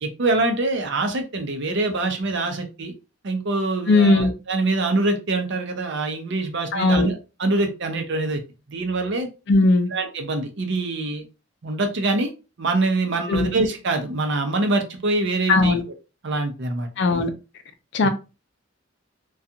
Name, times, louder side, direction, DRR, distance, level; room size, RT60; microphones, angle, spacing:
voice 1, 0.0-2.9 3.2-8.4 8.7-9.3 9.9-11.2 11.6-12.3 12.6-15.8 16.2-16.9 18.0-18.1, right 2 dB, 60° right, 0.6 m, -24 dB
voice 2, 3.9-4.3 6.7-7.1 9.5-9.9 13.3-13.5 15.5-15.8 17.0-17.3 17.9-18.1, left 2 dB, 60° left, 0.5 m, -17 dB
2.4 x 2.3 x 2.7 m
head